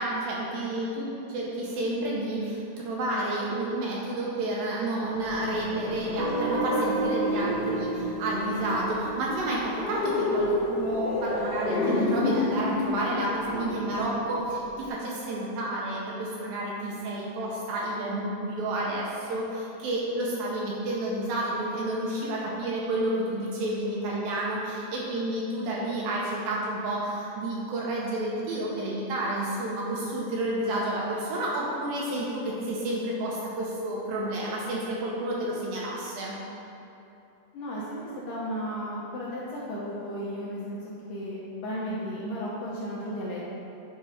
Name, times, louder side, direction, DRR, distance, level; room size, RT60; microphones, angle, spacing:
voice 1, 0.0-36.4, right 1 dB, 75° right, -4 dB, 2.3 m, -30 dB
sound 1, 5.2-14.9, left 2 dB, 60° left, 1.7 m, -31 dB
Guitar, 6.2-11.0, right 2 dB, 55° right, 1.4 m, -32 dB
voice 2, 37.5-38.0 38.3-40.8 41.1-43.4, equal, 75° left, -7 dB, 2.0 m, -34 dB
8.3 x 3.0 x 5.0 m, 2.9 s
omnidirectional pair, 4.6 m